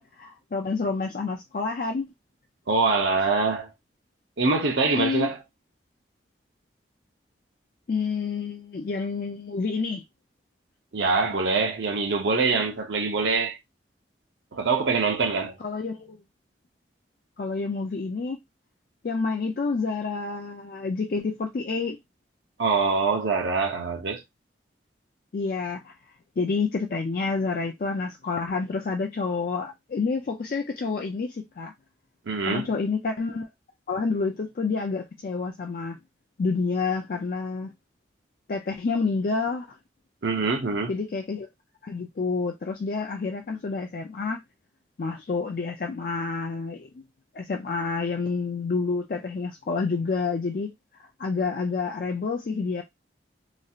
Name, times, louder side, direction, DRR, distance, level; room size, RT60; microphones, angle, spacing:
voice 1, 0.0-2.1 4.9-5.3 7.9-10.0 15.6-16.2 17.4-18.4 19.0-22.0 25.3-25.9 26.4-31.7 32.5-33.5 33.9-36.0 36.4-37.7 38.5-39.7 40.9-41.5 41.8-44.4 45.0-47.0 47.3-50.7 51.0-52.8, left 4 dB, 50° left, 0.4 m, -28 dB
voice 2, 2.7-3.7 4.4-5.4 10.9-13.6 14.5-15.6 22.6-24.2 32.3-32.7 40.2-40.9, right 4 dB, 75° right, 0.8 m, -24 dB
3.0 x 2.7 x 2.3 m
head